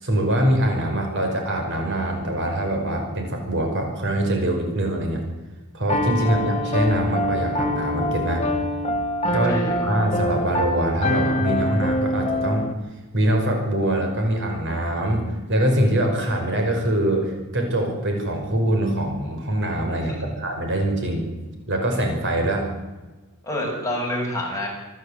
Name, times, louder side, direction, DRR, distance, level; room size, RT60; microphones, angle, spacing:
voice 1, 0.0-5.2 5.7-8.5 9.3-12.7 13.1-21.3 21.7-22.7, right 1 dB, 60° right, 3 dB, 5.5 m, -23 dB
Piano, 5.9-12.7, left 1 dB, 30° left, 1.9 m, -25 dB
voice 2, 9.3-9.7 20.1-20.3 23.4-24.7, left 1 dB, 15° left, -2 dB, 7.0 m, -28 dB
26.0 x 13.5 x 8.3 m, 1.2 s
head